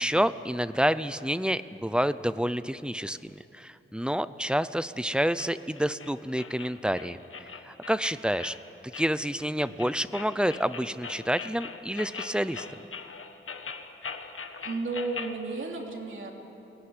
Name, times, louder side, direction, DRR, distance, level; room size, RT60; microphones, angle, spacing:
voice 1, 0.0-8.6 9.0-12.7, equal, 5° right, 14 dB, 0.5 m, -28 dB
sound 1, 5.4-15.4, left 5 dB, 80° left, 1.4 m, -41 dB
voice 2, 14.6-16.3, right 3 dB, 70° right, 1 dB, 3.1 m, -33 dB
22.5 x 18.0 x 9.8 m, 2.9 s
wide cardioid pair, 135°, 21 cm